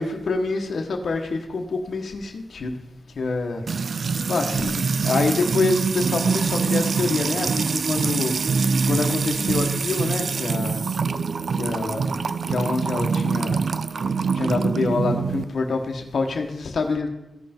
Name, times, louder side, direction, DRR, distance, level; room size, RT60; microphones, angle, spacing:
voice 1, 0.0-2.8 3.1-3.6 4.3-8.3 8.6-10.8 11.5-12.1 12.5-13.6 14.3-17.1, left 3 dB, 75° left, 3 dB, 1.2 m, -26 dB
Music / Water tap faucet / Trickle dribble, 3.7-15.4, right 5 dB, 65° right, 0.4 m, -24 dB
15.0 x 5.4 x 4.4 m, 0.92 s
cardioid pair, 75°, 0 cm